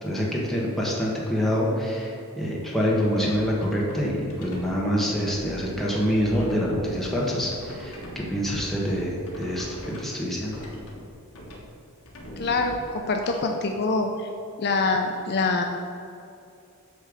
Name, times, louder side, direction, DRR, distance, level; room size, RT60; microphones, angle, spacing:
voice 1, 0.0-9.7 10.0-10.6, equal, ahead, -4 dB, 1.2 m, -26 dB
sound 1, 3.0-4.7 5.1-10.1 10.4-11.0 11.3-11.6 12.1-13.4, equal, 65° left, 1.4 m, -40 dB
voice 2, 12.4-14.3 14.6-15.6, left 3 dB, 50° left, 3 dB, 0.5 m, -25 dB
8.5 x 3.3 x 6.3 m, 2.6 s
head